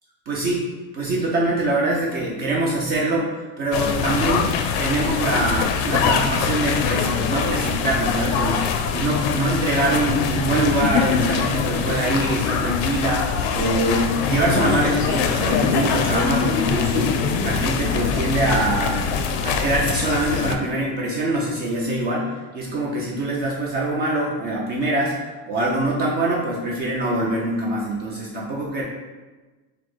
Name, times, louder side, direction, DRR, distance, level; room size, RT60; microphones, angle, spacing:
voice 1, 0.3-0.6 0.9-4.5 4.8-19.0 19.4-28.8, right 1 dB, 30° right, -3 dB, 0.4 m, -24 dB
sound 1, 3.7-20.6, left 6 dB, 85° left, 0.5 m, -23 dB
4.1 x 2.0 x 4.5 m, 1.3 s
cardioid pair, 175°, 31 cm